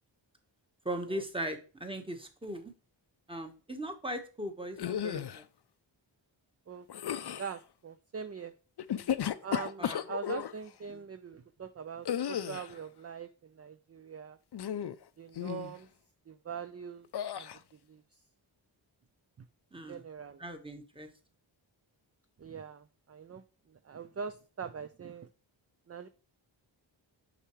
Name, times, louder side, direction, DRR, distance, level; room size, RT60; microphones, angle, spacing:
voice 1, 0.8-2.7 3.3-5.4 8.9-9.1 9.8-10.0 10.9-11.0 19.7-20.0 20.4-21.1, right 1 dB, 10° right, 5 dB, 1.2 m, -39 dB
sound 1, 4.8-5.4 6.9-7.5 8.8-10.5 12.0-12.8 14.5-15.0 15.3-15.7 17.1-17.6, left 9 dB, 60° left, 0.5 m, -34 dB
voice 2, 6.7-8.5 9.4-14.4 15.2-15.9 16.3-17.1 17.3-18.2 19.4-19.5 19.9-20.5 22.4-25.3 25.9-26.1, right 6 dB, 35° right, 10 dB, 0.5 m, -43 dB
6.7 x 5.8 x 3.1 m, 0.35 s
wide cardioid pair, 70°, 47 cm